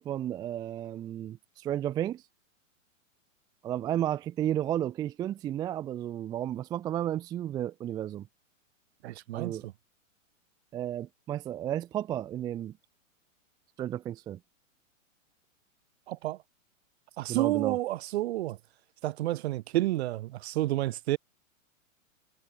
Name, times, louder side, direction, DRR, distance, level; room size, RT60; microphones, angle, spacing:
voice 1, 0.0-2.2 3.6-8.2 9.3-9.6 10.7-12.7 13.8-14.4 17.3-17.8, right 11 dB, 10° right, 0.5 m, -33 dB
voice 2, 9.0-9.7 16.1-16.4 17.2-18.6 19.0-21.2, right 16 dB, 50° right, 1.8 m, -30 dB
hypercardioid pair, 135°, 40 cm